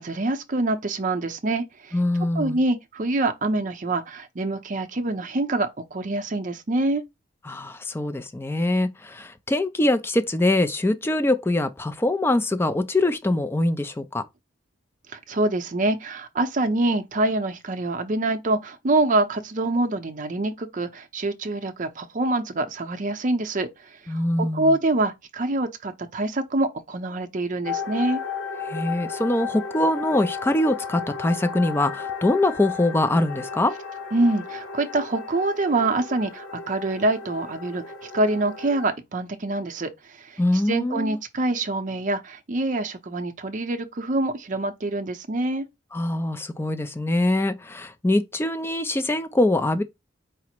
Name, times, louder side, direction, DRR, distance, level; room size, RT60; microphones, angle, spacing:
voice 1, 0.0-2.0 2.3-7.0 15.1-23.7 24.0-28.2 34.1-45.7, right 2 dB, 45° right, 0.6 m, -25 dB
voice 2, 1.9-2.6 7.5-14.2 24.1-24.8 28.7-33.7 40.4-41.2 45.9-49.8, left 1 dB, 10° left, 0.4 m, -23 dB
sound 1, 27.6-38.9, left 6 dB, 85° left, 1.0 m, -34 dB
4.9 x 2.0 x 4.3 m
head